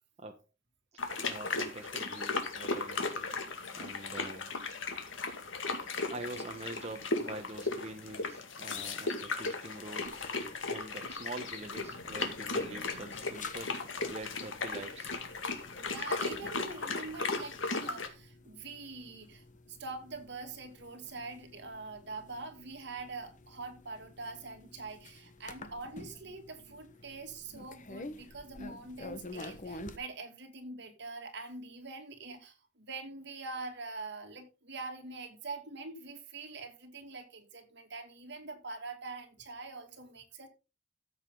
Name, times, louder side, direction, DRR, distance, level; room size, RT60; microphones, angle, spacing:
sound 1, 1.0-18.1, left 3 dB, 85° left, 2.2 m, -36 dB
voice 1, 1.2-3.3 3.7-4.5 5.6-10.2 10.6-13.8 14.1-15.1, right 2 dB, 35° right, 1.1 m, -45 dB
sound 2, 10.1-30.0, left 2 dB, 45° left, 1.3 m, -51 dB
voice 2, 15.8-40.5, right 3 dB, 65° right, 2.5 m, -44 dB
13.0 x 7.8 x 3.9 m
head